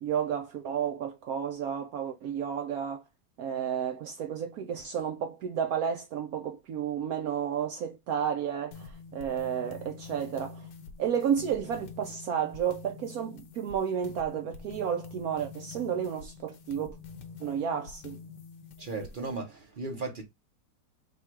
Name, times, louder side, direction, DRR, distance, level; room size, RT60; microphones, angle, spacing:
voice 1, 0.0-3.0 3.4-10.7 11.0-17.0 17.4-18.2, right 8 dB, 70° right, 0.9 m, -32 dB
sound 1, 8.7-19.4, left 5 dB, 70° left, 1.3 m, -47 dB
voice 2, 18.8-20.2, right 3 dB, 50° right, 0.6 m, -36 dB
3.7 x 2.3 x 4.4 m
omnidirectional pair, 1.9 m